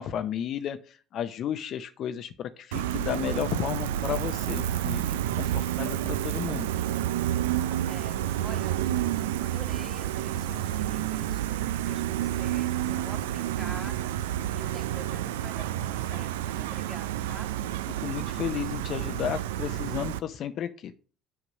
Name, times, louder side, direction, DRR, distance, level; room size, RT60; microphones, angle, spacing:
voice 1, 0.0-6.7 18.0-20.9, left 9 dB, 55° left, 9 dB, 0.6 m, -33 dB
Gull seagull, 2.7-20.2, right 12 dB, 85° right, 0.4 m, -30 dB
voice 2, 7.8-17.5, equal, ahead, 5 dB, 1.6 m, -48 dB
6.8 x 6.0 x 5.3 m, 0.40 s
hypercardioid pair, 65°, 0 cm